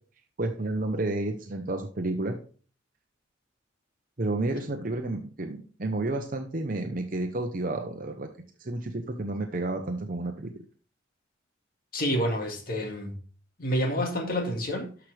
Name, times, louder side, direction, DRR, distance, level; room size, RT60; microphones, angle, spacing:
voice 1, 0.4-2.4 4.2-8.3 8.6-10.5, right 2 dB, 45° right, 0.8 m, -31 dB
voice 2, 11.9-13.2 13.6-14.9, equal, 50° left, 2.0 m, -28 dB
12.5 x 6.0 x 3.3 m
head